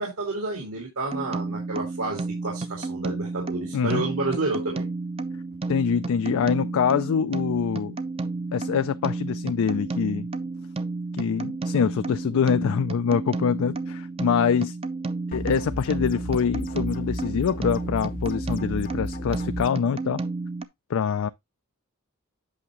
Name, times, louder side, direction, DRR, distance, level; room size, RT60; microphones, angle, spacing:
voice 1, 0.0-4.8, right 3 dB, 70° right, 2.4 m, -30 dB
sound 1, 1.1-20.6, right 3 dB, 25° right, 0.6 m, -32 dB
voice 2, 5.7-8.0 8.5-10.3 11.2-14.8 15.3-20.2 20.9-21.3, left 6 dB, 65° left, 0.4 m, -25 dB
sound 2, 15.3-19.7, left 1 dB, 40° left, 0.7 m, -34 dB
8.6 x 5.9 x 3.0 m
head